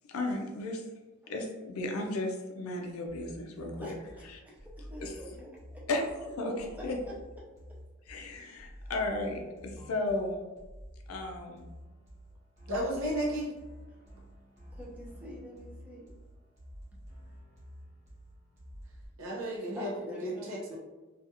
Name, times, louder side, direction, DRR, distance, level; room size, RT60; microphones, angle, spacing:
voice 1, 0.1-0.8 1.3-3.9 5.0-5.1 5.9-6.0 6.4-6.9 8.1-10.4 11.1-11.7, left 2 dB, 85° left, 2 dB, 0.4 m, -34 dB
sound 1, 3.1-19.1, equal, 35° right, 0.9 m, -50 dB
voice 2, 3.7-5.9 6.8-7.1 8.7-8.9 9.8-9.9 13.9-14.0 14.7-16.4 17.2-17.4 18.8-18.9 19.7-20.8, equal, 5° right, -5 dB, 0.5 m, -48 dB
voice 3, 12.7-13.5 19.2-19.9 20.2-20.8, equal, 75° right, -4 dB, 0.6 m, -33 dB
2.4 x 2.4 x 2.7 m, 1.2 s
head